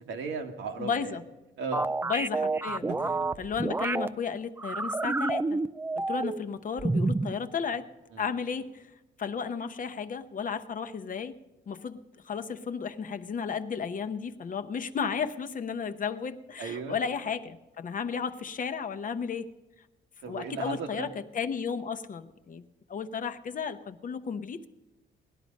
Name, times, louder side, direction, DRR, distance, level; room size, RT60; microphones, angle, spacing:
voice 1, 0.1-1.1 1.6-1.9 8.1-8.2 16.6-17.0 20.2-21.1, right 5 dB, 90° right, 3 dB, 1.6 m, -35 dB
voice 2, 0.8-1.2 2.0-2.9 3.4-5.6 6.0-7.9 8.2-8.9 9.2-11.4 11.7-19.5 20.3-22.6 22.9-24.7, left 6 dB, 45° left, 9 dB, 0.8 m, -33 dB
sound 1, 1.7-4.1 4.6-6.5 6.8-7.3, right 3 dB, 10° right, 0.4 m, -29 dB
18.0 x 11.0 x 5.2 m, 1.0 s
cardioid pair, 90°, 20 cm